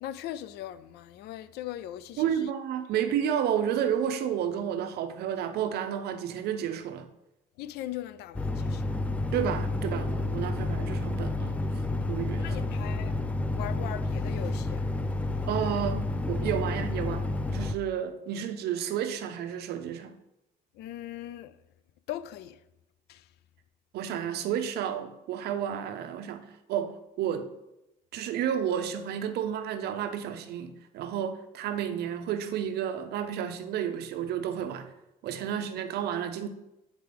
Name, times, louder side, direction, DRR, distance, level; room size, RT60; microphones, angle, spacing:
voice 1, 0.0-2.5 2.9-3.1 7.6-8.9 12.4-13.1 13.5-14.9 20.7-21.6 22.1-22.6 23.1-23.3, left 13 dB, 75° left, 0.4 m, -39 dB
voice 2, 2.2-7.1 9.3-11.6 12.1-12.6 15.5-17.3 17.5-20.1 23.9-27.5 28.1-34.9 35.2-36.5, right 9 dB, 70° right, 0.7 m, -31 dB
sound 1, 8.3-17.7, left 2 dB, 10° left, 0.3 m, -30 dB
8.0 x 4.5 x 3.4 m
cardioid pair, 110°, 17 cm